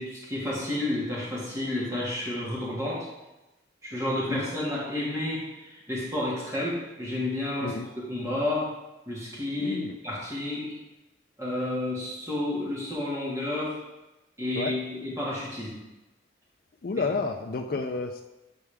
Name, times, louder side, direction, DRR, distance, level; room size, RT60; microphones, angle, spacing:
voice 1, 0.0-3.1 3.8-7.7 8.1-8.7 9.1-10.8 11.4-13.8 14.4-15.8, left 1 dB, 15° right, -7 dB, 1.7 m, -31 dB
voice 2, 9.6-10.0 14.6-14.8 16.8-18.2, left 3 dB, 50° left, 2 dB, 0.4 m, -30 dB
8.3 x 4.6 x 3.4 m, 1.0 s
head